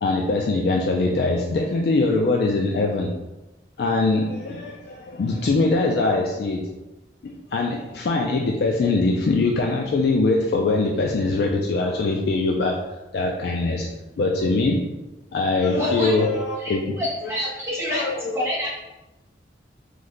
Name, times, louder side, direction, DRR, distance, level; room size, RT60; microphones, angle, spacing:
voice 1, 0.0-3.1 3.8-6.6 7.2-12.8 13.1-13.9 14.2-14.8 15.3-17.3 17.9-18.5, left 3 dB, 65° left, 0 dB, 0.3 m, -22 dB
voice 2, 15.7-16.1 16.6-18.8, equal, 15° right, -7 dB, 0.8 m, -28 dB
3.1 x 2.1 x 3.8 m, 1.0 s
head